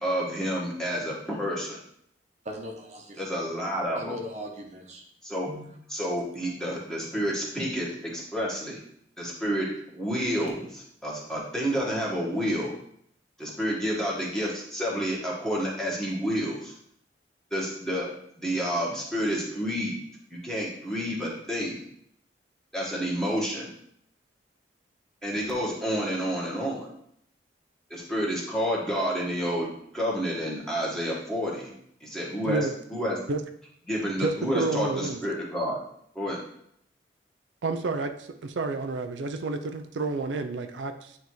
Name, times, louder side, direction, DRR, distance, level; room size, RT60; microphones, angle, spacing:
voice 1, 0.0-1.8 3.2-4.1 5.2-5.5 5.9-8.8 9.2-9.7 9.9-12.7 13.4-16.7 17.5-18.1 18.4-20.0 20.3-21.8 22.7-23.7 25.2-26.9 27.9-29.7 29.9-31.7 32.0-33.2 33.9-35.8 36.1-36.4, equal, 5° left, -5 dB, 1.4 m, -29 dB
voice 2, 2.4-3.2 3.9-5.0 5.5-5.7, equal, 40° right, 1 dB, 0.9 m, -39 dB
voice 3, 34.2-35.2 37.6-41.2, right 3 dB, 85° right, 7 dB, 0.5 m, -30 dB
8.9 x 3.4 x 3.1 m, 0.69 s
head